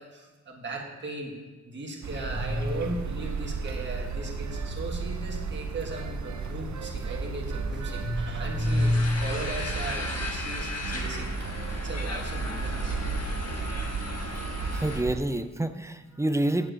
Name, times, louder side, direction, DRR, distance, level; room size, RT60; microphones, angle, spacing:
voice 1, 0.0-1.3 1.6-12.9, equal, 40° right, -1 dB, 1.6 m, -33 dB
sound 1, 2.0-15.2, right 4 dB, 75° right, 0.8 m, -33 dB
sound 2, 8.6-15.0, left 2 dB, 60° left, 1.3 m, -37 dB
voice 2, 14.7-16.7, right 1 dB, 10° right, 10 dB, 0.4 m, -28 dB
8.5 x 7.7 x 6.4 m, 1.2 s
wide cardioid pair, 140°, 29 cm